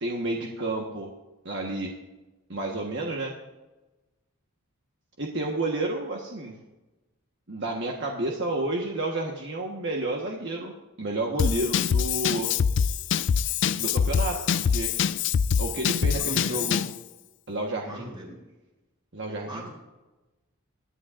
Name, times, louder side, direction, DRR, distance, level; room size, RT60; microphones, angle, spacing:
voice 1, 0.0-1.1 1.4-1.9 2.5-3.3 5.2-6.5 7.5-10.7 11.0-12.5 13.7-14.9 15.6-16.8 17.5-18.1 19.1-19.6, right 2 dB, 55° right, 0 dB, 1.3 m, -30 dB
Drum kit / Drum, 11.4-17.0, left 7 dB, 55° left, 0.3 m, -25 dB
voice 2, 16.0-16.7 17.8-18.4 19.5-19.7, right 1 dB, 20° right, -2 dB, 3.7 m, -40 dB
22.0 x 10.0 x 2.5 m, 1.1 s
head